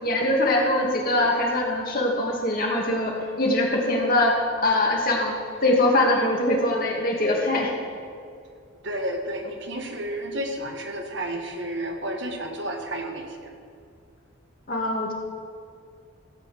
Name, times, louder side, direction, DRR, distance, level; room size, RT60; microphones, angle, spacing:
voice 1, 0.0-4.4 4.6-7.7 14.7-15.1, left 1 dB, 45° left, -1 dB, 2.1 m, -22 dB
voice 2, 8.8-13.3, right 1 dB, 60° right, 3 dB, 1.4 m, -31 dB
16.0 x 5.7 x 7.7 m, 2.3 s
head